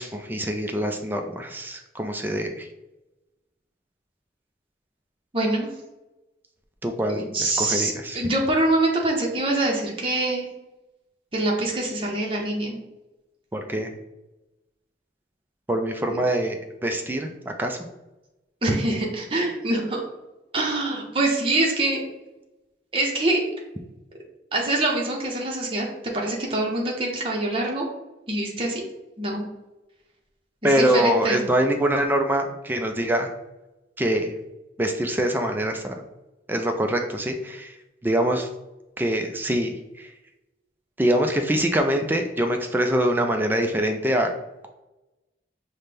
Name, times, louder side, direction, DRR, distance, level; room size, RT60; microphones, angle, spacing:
voice 1, 0.0-2.7 6.8-8.3 13.5-13.9 15.7-17.8 30.6-33.3 34.0-34.4 34.8-36.0 36.5-37.8 38.0-38.5 39.0-40.1 41.0-44.3, right 1 dB, 10° right, 4 dB, 0.3 m, -24 dB
voice 2, 5.3-5.7 7.1-10.5 11.3-12.8 16.1-16.2 18.6-20.0 20.5-22.0 22.9-23.5 24.5-25.9 26.1-27.8 28.3-28.8 29.2-29.4 30.6-31.4, right 2 dB, 30° right, -1 dB, 0.7 m, -24 dB
5.7 x 2.1 x 3.3 m, 0.99 s
head